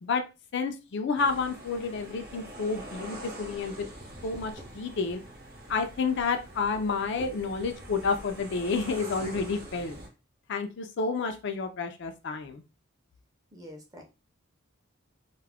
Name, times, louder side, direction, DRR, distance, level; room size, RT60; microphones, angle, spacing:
voice 1, 0.5-3.9 4.2-5.2 5.7-10.0 10.5-12.6, left 4 dB, 60° left, 7 dB, 0.4 m, -30 dB
sound 1, 1.2-10.1, right 1 dB, 50° right, 0.8 m, -44 dB
voice 2, 13.5-14.0, equal, 20° right, 2 dB, 0.5 m, -46 dB
2.3 x 2.0 x 3.4 m, 0.28 s
head